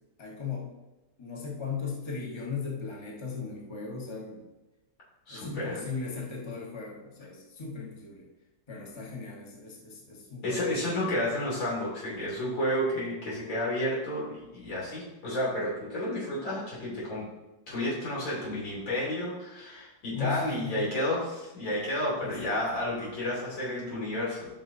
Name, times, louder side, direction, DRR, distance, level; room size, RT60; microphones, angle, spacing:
voice 1, 0.2-0.7 1.2-4.4 5.3-8.3 8.7-11.1 20.1-20.9 22.2-22.6, left 5 dB, 15° left, -2 dB, 1.3 m, -37 dB
voice 2, 5.3-5.8 10.4-17.2 17.7-24.5, left 1 dB, 85° left, -6 dB, 3.9 m, -31 dB
13.0 x 6.1 x 2.7 m, 1.0 s
omnidirectional pair, 2.0 m